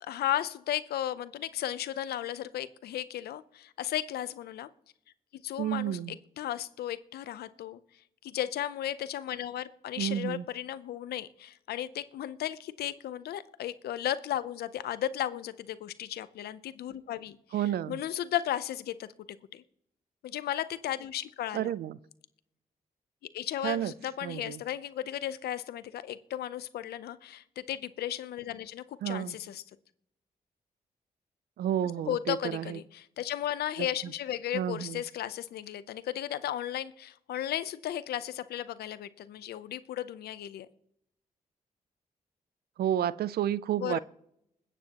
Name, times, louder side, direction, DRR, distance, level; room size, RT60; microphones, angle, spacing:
voice 1, 0.0-4.7 5.4-6.0 6.4-7.8 8.2-17.4 17.9-19.1 19.5-19.6 20.2-21.7 23.3-29.6 32.1-40.7 43.8-44.0, left 11 dB, 85° left, 15 dB, 0.7 m, -35 dB
voice 2, 5.6-6.2 10.0-10.4 17.5-18.0 21.5-22.0 23.6-23.9 24.2-24.6 29.0-29.3 31.6-32.8 33.8-33.9 34.5-35.0 42.8-44.0, right 11 dB, 80° right, 19 dB, 0.5 m, -31 dB
21.0 x 9.1 x 3.0 m, 0.75 s
supercardioid pair, 50°, 16 cm